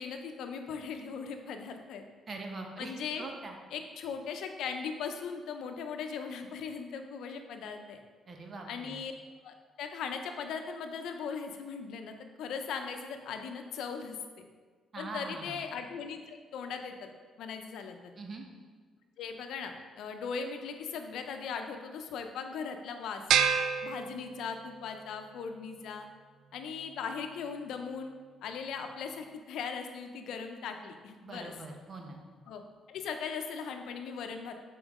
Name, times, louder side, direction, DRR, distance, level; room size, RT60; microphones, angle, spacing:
voice 1, 0.0-2.0 2.8-3.3 3.7-8.0 8.7-9.1 9.4-14.5 15.0-16.9 17.4-18.1 19.2-23.2 23.8-26.1 26.5-28.1 28.4-31.5 32.5-32.6 32.9-34.5, left 6 dB, 80° left, 6 dB, 0.6 m, -39 dB
voice 2, 2.3-3.6 8.3-9.0 14.9-15.6 18.2-18.4 31.2-32.2, right 3 dB, 40° right, 2 dB, 1.0 m, -42 dB
sound 1, 23.3-24.8, right 7 dB, 80° right, 0.3 m, -28 dB
7.1 x 4.5 x 3.6 m, 1.5 s
cardioid pair, 90°, 0 cm